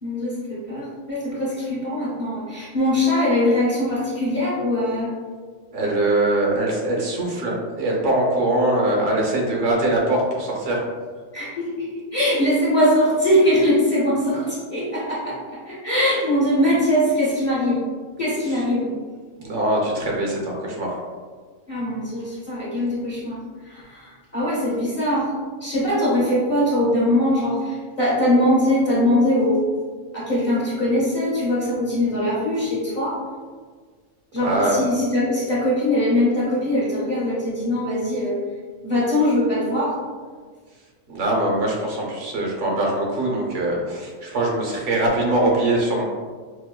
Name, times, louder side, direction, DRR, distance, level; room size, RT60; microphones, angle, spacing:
voice 1, 0.0-5.1 11.3-17.8 18.2-18.9 21.7-23.4 23.6-25.3 25.6-29.6 30.1-33.2 34.3-38.4 38.8-40.0, left 1 dB, 30° left, -8 dB, 0.8 m, -21 dB
voice 2, 5.7-10.8 19.4-21.0 34.4-34.8 41.1-46.0, right 1 dB, 70° right, -2 dB, 1.0 m, -22 dB
4.3 x 2.1 x 2.2 m, 1.5 s
omnidirectional pair, 1.3 m